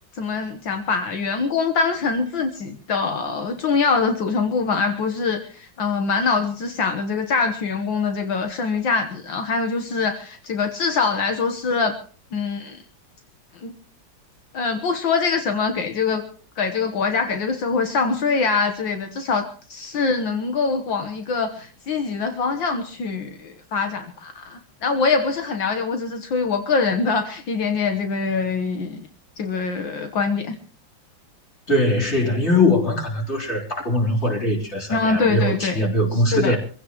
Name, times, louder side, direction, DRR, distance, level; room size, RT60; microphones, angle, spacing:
voice 1, 0.2-12.0 12.3-12.8 13.6-13.7 14.5-16.3 16.6-29.0 29.4-30.6 34.9-35.9 36.1-36.6, left 4 dB, 75° left, 6 dB, 2.0 m, -24 dB
voice 2, 31.7-36.6, left 1 dB, 30° left, 0 dB, 3.9 m, -21 dB
25.5 x 16.0 x 3.0 m, 0.40 s
omnidirectional pair, 2.1 m